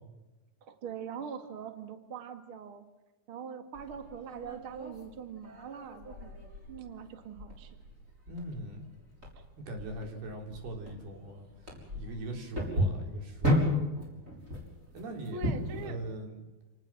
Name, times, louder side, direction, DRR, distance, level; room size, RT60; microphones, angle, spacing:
voice 1, 0.6-2.8 3.3-6.3 6.7-7.7 9.4-9.5 15.3-16.0, right 6 dB, 40° right, 7 dB, 2.4 m, -42 dB
sound 1, 3.7-15.9, left 1 dB, 20° right, 6.5 m, -35 dB
voice 2, 8.3-8.9 9.6-13.8 14.9-15.4 15.8-16.4, right 1 dB, 85° right, 3 dB, 5.8 m, -41 dB
29.5 x 19.0 x 7.7 m, 1.1 s
omnidirectional pair, 4.4 m